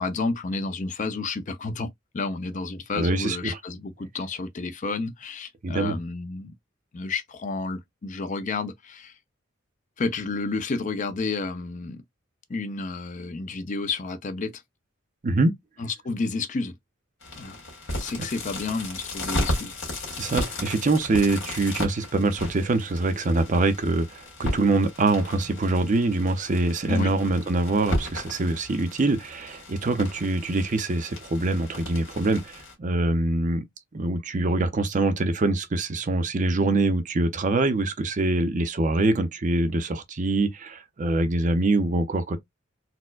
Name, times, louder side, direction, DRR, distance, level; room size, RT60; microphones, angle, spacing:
voice 1, 0.0-6.5 6.9-9.1 10.0-12.0 12.5-14.6 15.8-16.7 17.4-17.6 17.9-19.8 26.9-27.1, left 3 dB, 40° left, 0.5 m, -31 dB
voice 2, 3.0-3.6 5.6-6.0 15.2-15.5 20.2-33.7 33.9-42.4, right 2 dB, 40° right, 0.5 m, -24 dB
sound 1, 17.2-32.7, left 1 dB, 70° left, 1.8 m, -35 dB
4.2 x 2.1 x 2.3 m
head